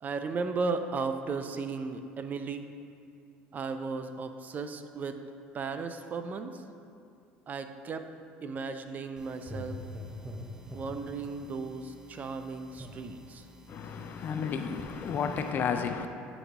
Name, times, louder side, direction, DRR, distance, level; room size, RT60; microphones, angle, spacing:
voice 1, 0.0-2.6 3.5-5.2 5.5-6.6 7.5-8.1 8.4-9.8 10.7-13.4, right 4 dB, 35° right, 0.5 m, -35 dB
sound 1, 9.2-15.5, left 1 dB, 15° right, 0.9 m, -46 dB
voice 2, 13.7-16.1, left 6 dB, 45° left, 0.4 m, -32 dB
8.8 x 4.1 x 3.4 m
supercardioid pair, 85°, 5 cm